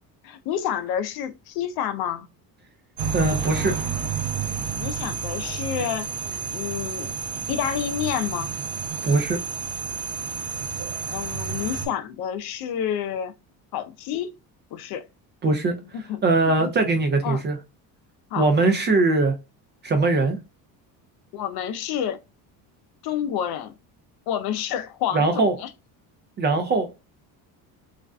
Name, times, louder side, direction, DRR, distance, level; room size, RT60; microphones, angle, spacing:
voice 1, 0.2-2.3 4.8-6.1 6.5-7.1 7.5-8.6 11.1-13.3 13.7-14.4 14.7-15.1 15.9-16.2 16.6-16.7 17.2-17.4 18.3-18.5 21.3-22.2 23.0-23.7 24.3-25.7, left 9 dB, 65° left, 0.5 m, -29 dB
sound 1, 3.0-11.9, right 6 dB, 70° right, 0.7 m, -30 dB
voice 2, 3.1-3.7 9.0-9.4 15.4-15.7 16.2-17.6 18.4-19.3 19.8-20.4 25.1-25.6 26.4-26.9, right 3 dB, 25° right, 0.4 m, -21 dB
2.4 x 2.1 x 2.3 m
cardioid pair, 120°, 41 cm